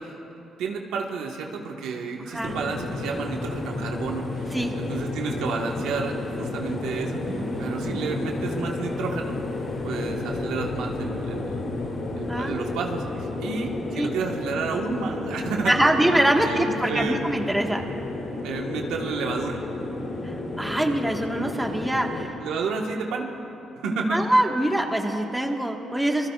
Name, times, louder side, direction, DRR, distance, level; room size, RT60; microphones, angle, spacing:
voice 1, 0.0-7.2 7.6-9.3 9.8-11.6 12.2-15.8 16.3-17.2 17.5-17.6 18.4-19.6 22.4-23.3 23.8-24.3, right 4 dB, 90° right, 1 dB, 1.4 m, -31 dB
sound 1, 2.4-22.3, left 2 dB, 55° left, 2.3 m, -31 dB
voice 2, 7.3-8.0 12.2-12.7 13.9-14.1 15.6-17.8 20.2-22.4 24.1-26.3, right 1 dB, 10° right, 2 dB, 1.5 m, -24 dB
26.5 x 21.5 x 2.4 m, 3.0 s
cardioid pair, 90°, 0 cm